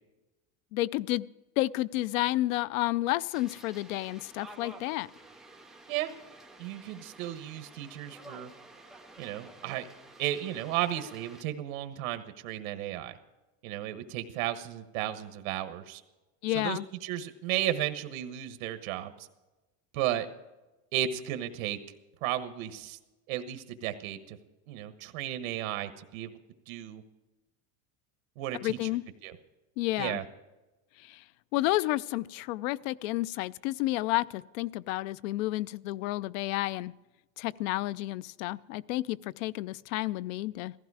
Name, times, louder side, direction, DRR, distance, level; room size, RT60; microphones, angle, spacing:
voice 1, 0.7-1.3 1.6-5.1 16.4-16.9 28.6-29.0 29.8-30.2 31.0-31.2 31.5-36.9 37.4-40.7, left 17 dB, 75° left, 19 dB, 0.6 m, -31 dB
sound 1, 3.3-11.4, right 2 dB, ahead, 0.5 m, -51 dB
voice 2, 6.6-8.5 9.2-9.9 10.2-13.2 13.6-16.0 16.5-19.3 19.9-20.3 20.9-21.8 22.2-23.0 23.3-24.4 24.7-26.3 26.7-27.0 28.4-28.9 29.2-29.3 30.0-30.2, right 12 dB, 90° right, 9 dB, 1.3 m, -34 dB
16.0 x 15.0 x 4.8 m, 1.1 s
cardioid pair, 175°, 40 cm